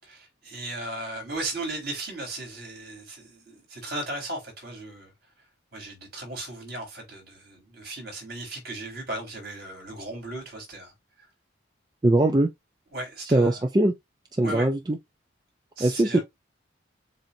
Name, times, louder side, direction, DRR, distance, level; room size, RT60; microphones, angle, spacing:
voice 1, 0.0-5.1 5.7-10.9 12.9-13.6 14.4-14.7 15.8-16.2, right 2 dB, 55° right, 3.9 m, -36 dB
voice 2, 12.0-12.5 13.3-13.9 14.4-15.0 15.8-16.2, right 1 dB, 20° right, 0.5 m, -21 dB
7.4 x 2.6 x 2.7 m
head